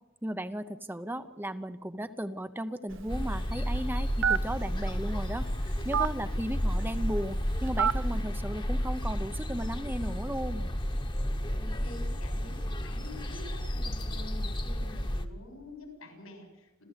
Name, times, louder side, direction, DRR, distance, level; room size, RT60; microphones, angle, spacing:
voice 1, 0.2-10.7, right 1 dB, 10° right, 10 dB, 0.7 m, -36 dB
Telephone, 2.9-8.2, right 6 dB, 60° right, 0.6 m, -33 dB
sound 1, 3.1-15.2, equal, 25° left, 1.2 m, -32 dB
voice 2, 11.5-16.8, left 1 dB, 85° left, 4 dB, 7.2 m, -47 dB
28.5 x 14.0 x 8.2 m, 1.1 s
head